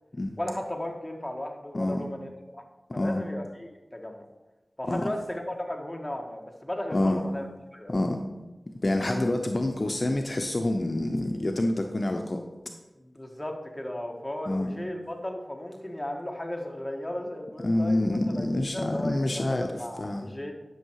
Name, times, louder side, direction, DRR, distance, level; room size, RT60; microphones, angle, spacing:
voice 1, 0.4-2.6 2.9-4.3 4.8-7.4 7.7-8.0 13.0-20.5, left 1 dB, 15° left, 1 dB, 1.7 m, -35 dB
voice 2, 6.9-7.2 7.9-8.2 8.8-12.4 14.5-14.7 17.6-20.3, left 1 dB, 55° left, 4 dB, 0.8 m, -27 dB
11.0 x 6.5 x 4.7 m, 1.1 s
wide cardioid pair, 45°, 0 cm